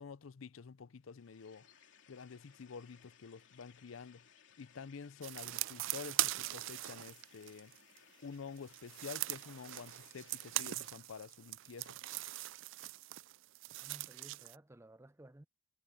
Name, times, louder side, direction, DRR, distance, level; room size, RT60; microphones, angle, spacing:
voice 1, 0.0-1.7 2.1-4.2 4.6-7.7 8.2-12.0, left 5 dB, 90° left, 0.6 m, -49 dB
sound 1, 1.0-10.9, left 7 dB, 65° left, 3.2 m, -64 dB
sound 2, 5.2-8.0 8.6-14.6, right 17 dB, 70° right, 0.3 m, -40 dB
voice 2, 13.8-15.5, right 1 dB, 15° right, 0.6 m, -56 dB
head